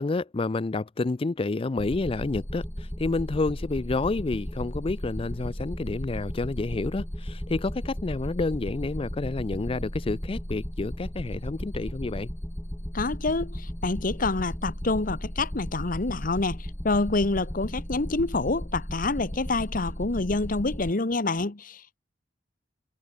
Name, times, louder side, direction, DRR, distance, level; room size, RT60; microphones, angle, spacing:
voice 1, 0.0-12.3, left 3 dB, 30° left, 0.4 m, -29 dB
sound 1, 1.8-20.9, equal, 15° left, 1.8 m, -35 dB
voice 2, 12.9-22.0, left 3 dB, 50° left, 1.1 m, -27 dB
head